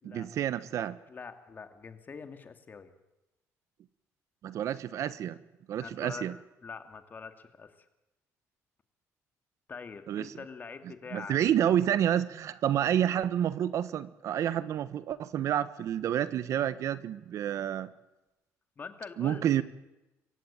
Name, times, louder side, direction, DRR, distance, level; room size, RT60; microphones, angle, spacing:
voice 1, 0.0-1.0 4.4-5.4 5.7-6.3 10.1-10.3 11.1-17.9 19.2-19.6, right 10 dB, 65° right, 15 dB, 1.1 m, -29 dB
voice 2, 1.1-2.9 5.7-6.2 6.6-7.9 9.7-11.4 18.8-19.6, left 5 dB, 35° left, 8 dB, 2.5 m, -44 dB
26.5 x 15.5 x 9.0 m, 0.96 s
cardioid pair, 115°, 6 cm